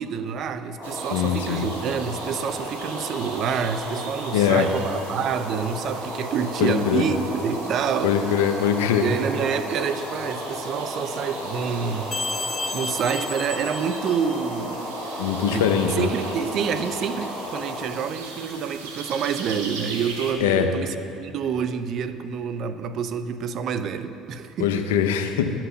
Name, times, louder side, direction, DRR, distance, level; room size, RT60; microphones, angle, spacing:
voice 1, 0.0-8.4 9.0-12.1 12.7-15.0 15.5-15.7 16.0-24.9, right 7 dB, 55° right, 11 dB, 0.6 m, -28 dB
sound 1, 0.8-17.9, equal, ahead, 2.7 m, -34 dB
sound 2, 0.8-20.3, right 3 dB, 90° right, 1.2 m, -40 dB
voice 2, 1.1-1.7 4.3-4.7 6.6-7.1 8.0-9.0 15.2-16.1 20.4-20.7 24.6-25.5, left 8 dB, 85° left, 7 dB, 0.6 m, -22 dB
sound 3, 12.1-14.7, left 3 dB, 25° left, 1.1 m, -32 dB
11.0 x 5.9 x 6.9 m, 2.9 s
hypercardioid pair, 75°, 0 cm